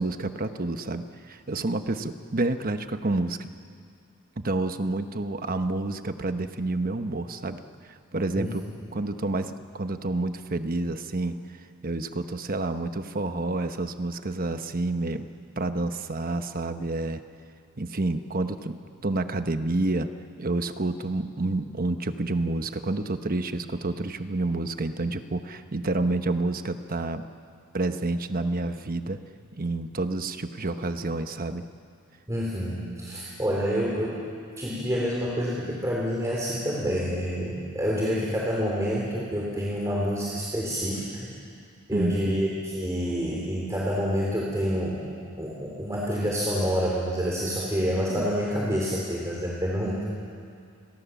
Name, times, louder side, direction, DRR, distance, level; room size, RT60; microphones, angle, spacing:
voice 1, 0.0-3.4 4.4-7.6 7.9-8.7 8.9-11.4 11.8-15.3 15.6-17.2 17.8-20.1 20.4-27.3 27.7-29.2 29.6-31.6 41.9-42.4 48.1-48.3, right 2 dB, 40° right, 8 dB, 1.1 m, -29 dB
voice 2, 32.3-34.2 34.6-41.3 41.9-45.0 45.4-50.0, equal, 15° right, -4 dB, 3.5 m, -28 dB
29.5 x 22.0 x 7.2 m, 2.3 s
head